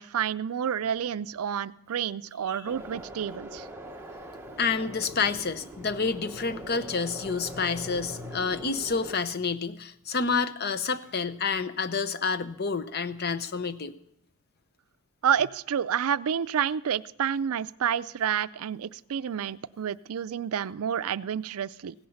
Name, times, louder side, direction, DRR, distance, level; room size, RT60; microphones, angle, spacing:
voice 1, 0.0-3.7 15.2-21.9, right 8 dB, 80° right, 16 dB, 0.4 m, -29 dB
sound 1, 2.6-9.2, right 1 dB, 10° right, 1.1 m, -43 dB
voice 2, 4.6-13.9, left 5 dB, 45° left, 12 dB, 0.7 m, -29 dB
16.5 x 10.5 x 5.7 m, 0.76 s
head